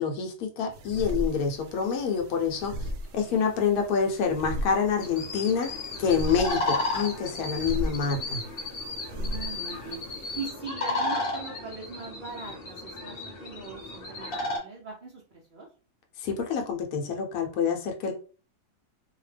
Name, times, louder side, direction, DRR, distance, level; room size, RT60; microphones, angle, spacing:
voice 1, 0.0-5.7 6.0-8.4 16.2-18.1, left 6 dB, 75° left, 2 dB, 1.1 m, -27 dB
sound 1, 0.7-10.5, equal, 80° right, 1.1 m, -37 dB
voice 2, 3.2-3.5 9.1-10.0 10.3-15.7, right 4 dB, 55° right, -4 dB, 0.5 m, -40 dB
sound 2, 5.0-14.6, left 2 dB, 45° left, 0.9 m, -33 dB
2.7 x 2.1 x 3.2 m, 0.37 s
omnidirectional pair, 1.6 m